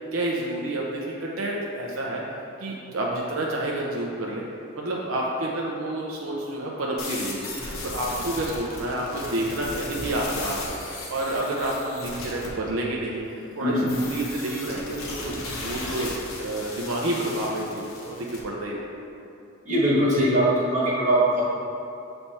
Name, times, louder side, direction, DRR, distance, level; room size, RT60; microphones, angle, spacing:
voice 1, 0.1-4.4 4.8-18.9, right 1 dB, 70° right, -3 dB, 0.6 m, -29 dB
sound 1, 7.0-12.5 13.9-18.4, left 2 dB, 80° left, 1.0 m, -36 dB
voice 2, 19.6-21.4, right 1 dB, 35° right, -7 dB, 1.4 m, -21 dB
7.0 x 3.3 x 4.2 m, 2.7 s
head